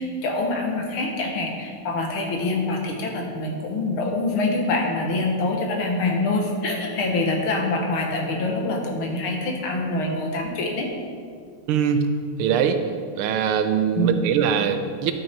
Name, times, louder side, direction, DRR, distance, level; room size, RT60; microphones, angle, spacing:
voice 1, 0.0-10.9 14.0-14.3, left 2 dB, 80° left, 1 dB, 2.2 m, -25 dB
voice 2, 11.7-12.1 12.4-12.8 13.2-15.1, right 7 dB, 90° right, 8 dB, 1.6 m, -22 dB
11.0 x 6.3 x 4.5 m, 2.1 s
omnidirectional pair, 2.3 m